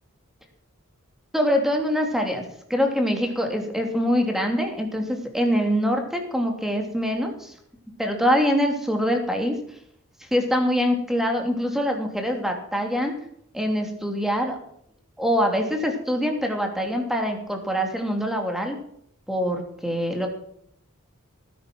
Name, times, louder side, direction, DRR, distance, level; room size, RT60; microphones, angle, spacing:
voice 1, 1.3-2.4 2.7-7.5 8.0-9.6 10.3-13.1 13.5-14.6 15.2-18.8 19.3-20.3, equal, ahead, 3 dB, 2.9 m, -24 dB
17.5 x 10.0 x 6.2 m, 0.68 s
head